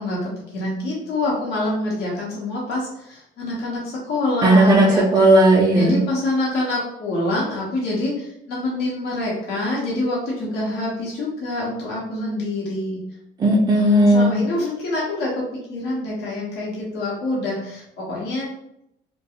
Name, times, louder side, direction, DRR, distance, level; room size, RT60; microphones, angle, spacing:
voice 1, 0.0-5.1 5.7-13.0 13.7-18.5, left 1 dB, 75° left, -5 dB, 0.9 m, -26 dB
voice 2, 4.4-6.0 13.4-14.4, right 1 dB, 25° right, -3 dB, 0.4 m, -15 dB
2.4 x 2.2 x 2.8 m, 0.77 s
cardioid pair, 110°, 17 cm